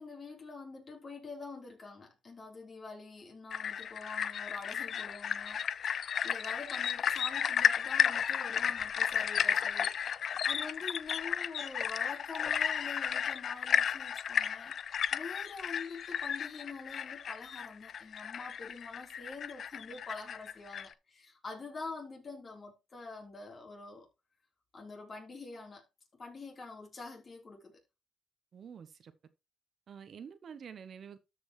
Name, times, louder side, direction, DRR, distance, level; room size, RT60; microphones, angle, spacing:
voice 1, 0.0-24.1 24.7-25.8 26.1-27.8, left 3 dB, 40° left, 3.7 m, -46 dB
sound 1, 3.5-20.9, left 8 dB, 60° left, 0.4 m, -33 dB
voice 2, 28.5-29.1 29.9-31.2, right 7 dB, 55° right, 0.9 m, -48 dB
13.0 x 5.3 x 3.2 m
cardioid pair, 90°, 0 cm